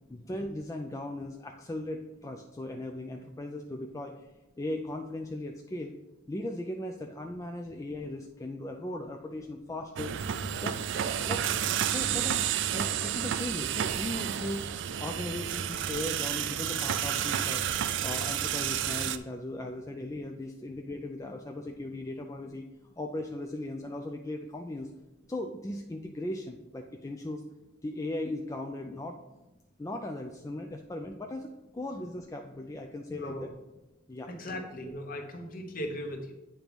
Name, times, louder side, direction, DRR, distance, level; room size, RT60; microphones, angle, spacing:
voice 1, 0.1-4.1 4.6-5.9 6.3-10.1 10.6-10.8 11.2-11.5 11.9-12.4 12.7-14.6 15.0-17.6 18.0-22.7 23.0-24.9 25.3-27.4 27.8-29.2 29.8-33.5 34.1-34.3, left 1 dB, 15° left, 3 dB, 0.3 m, -38 dB
sound 1, 10.0-19.2, right 9 dB, 60° right, 0.3 m, -31 dB
voice 2, 33.1-33.5 34.3-36.3, equal, 45° left, 3 dB, 1.0 m, -38 dB
8.6 x 3.0 x 5.2 m, 1.0 s
head